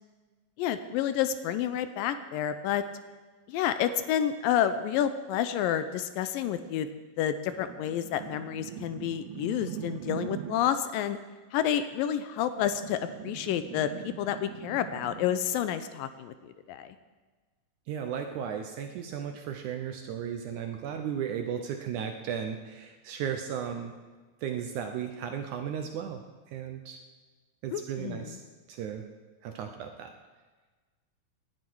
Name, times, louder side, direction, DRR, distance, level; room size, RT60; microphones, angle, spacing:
voice 1, 0.6-2.8 3.5-6.9 7.2-11.2 11.5-17.0 27.7-28.4, left 10 dB, 80° left, 11 dB, 2.3 m, -29 dB
sound 1, 7.5-10.8 12.6-15.3, right 12 dB, 90° right, 2.5 m, -42 dB
voice 2, 17.9-23.9 24.4-26.2 26.5-27.0 27.6-28.4 28.7-29.0 29.4-30.1, right 8 dB, 75° right, 5 dB, 1.9 m, -35 dB
18.0 x 11.0 x 4.7 m, 1.3 s
omnidirectional pair, 4.2 m